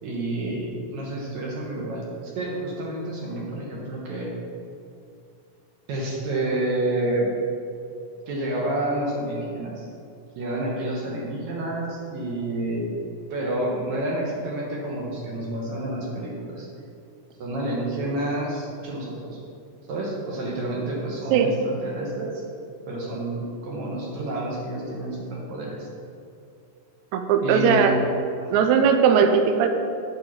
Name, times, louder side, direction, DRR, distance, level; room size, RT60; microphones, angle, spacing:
voice 1, 0.0-4.3 5.9-7.3 8.3-9.9 10.4-12.9 13.3-16.7 17.4-19.4 19.9-22.4 22.9-25.9 27.4-28.0 28.4-28.6, right 1 dB, 65° right, -3 dB, 2.2 m, -29 dB
voice 2, 27.1-28.0 28.5-29.7, right 6 dB, 80° right, 6 dB, 1.7 m, -18 dB
7.3 x 5.3 x 6.0 m, 2.5 s
omnidirectional pair, 4.0 m